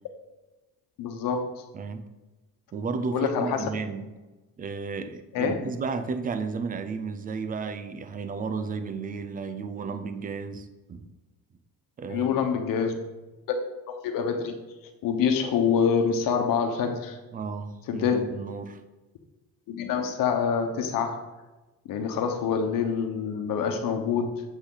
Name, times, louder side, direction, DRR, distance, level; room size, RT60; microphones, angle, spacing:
voice 1, 1.0-1.6 3.1-3.7 5.3-5.6 12.1-12.9 13.5-13.6 13.9-14.5 15.0-17.2 17.9-18.2 19.7-21.2 21.9-24.4, left 6 dB, 65° left, 5 dB, 1.2 m, -26 dB
voice 2, 1.7-2.1 2.7-4.1 4.6-11.1 12.0-12.6 17.3-18.8, right 4 dB, 25° right, 10 dB, 0.5 m, -33 dB
8.1 x 6.2 x 3.9 m, 1.1 s
cardioid pair, 165°, 36 cm